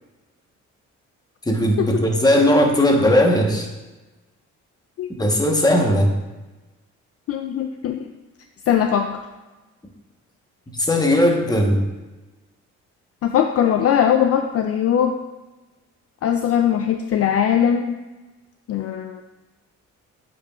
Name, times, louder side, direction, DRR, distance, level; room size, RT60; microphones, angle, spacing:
voice 1, 1.5-3.7 5.2-6.2 10.7-11.8, left 1 dB, 15° left, 1 dB, 1.1 m, -18 dB
voice 2, 7.3-8.0 8.7-9.2 13.2-15.2 16.2-18.0 18.7-19.2, left 9 dB, 50° left, 6 dB, 0.4 m, -20 dB
8.2 x 5.0 x 2.4 m, 1.1 s
cardioid pair, 90°, 30 cm